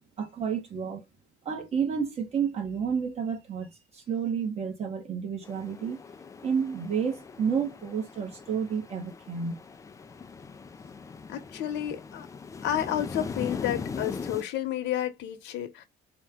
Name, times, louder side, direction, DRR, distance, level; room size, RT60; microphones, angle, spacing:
voice 1, 0.2-1.0 1.4-6.0 6.4-9.6, right 6 dB, 35° right, 1.0 m, -30 dB
sound 1, 5.4-14.4, left 5 dB, 20° left, 0.3 m, -40 dB
voice 2, 11.3-12.3 12.6-15.8, left 11 dB, 75° left, 0.9 m, -31 dB
4.2 x 2.2 x 3.6 m
cardioid pair, 155°, 18 cm